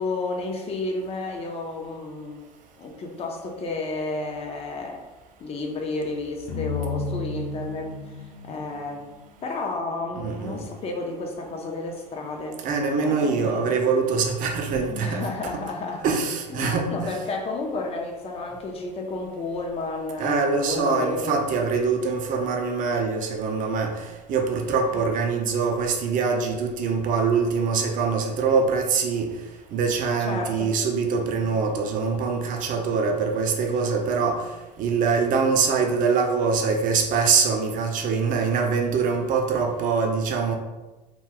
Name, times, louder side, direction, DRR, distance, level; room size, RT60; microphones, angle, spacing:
voice 1, 0.0-2.4 2.8-5.0 5.4-9.1 9.4-12.6 13.0-13.8 14.9-16.0 16.6-21.4 24.9-25.0 30.2-30.7, left 3 dB, 30° left, 2 dB, 0.5 m, -31 dB
sound 1, 6.5-9.7, left 4 dB, 50° left, 0.9 m, -33 dB
voice 2, 10.2-10.6 12.6-15.3 15.5-15.6 16.0-17.2 20.2-23.9 24.3-29.3 29.7-34.4 34.8-40.6, right 5 dB, 40° right, 3 dB, 0.6 m, -24 dB
2.3 x 2.3 x 3.4 m, 1.1 s
hypercardioid pair, 80°, 21 cm